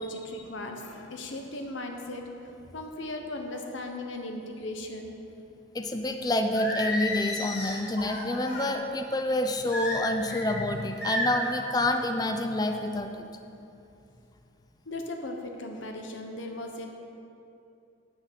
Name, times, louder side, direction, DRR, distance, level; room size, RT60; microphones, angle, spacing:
voice 1, 0.0-2.5 2.7-5.2 14.8-16.9, left 1 dB, 75° left, 3 dB, 1.0 m, -37 dB
voice 2, 5.7-13.3, left 1 dB, 20° left, 6 dB, 0.5 m, -28 dB
Singing, 6.5-8.7 9.7-10.5 11.0-11.5, left 1 dB, 55° left, 1.8 m, -32 dB
9.9 x 6.0 x 6.7 m, 2.7 s
head